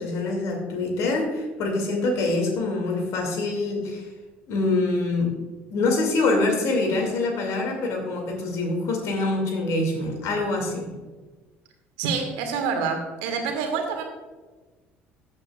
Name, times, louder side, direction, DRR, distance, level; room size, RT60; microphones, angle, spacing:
voice 1, 0.0-4.1 4.5-5.3 5.7-10.9, left 2 dB, 55° left, 2 dB, 2.4 m, -25 dB
voice 2, 12.0-14.0, right 5 dB, 65° right, 4 dB, 1.7 m, -27 dB
14.5 x 8.8 x 2.4 m, 1.3 s
figure-of-eight pair, 55°, 6 cm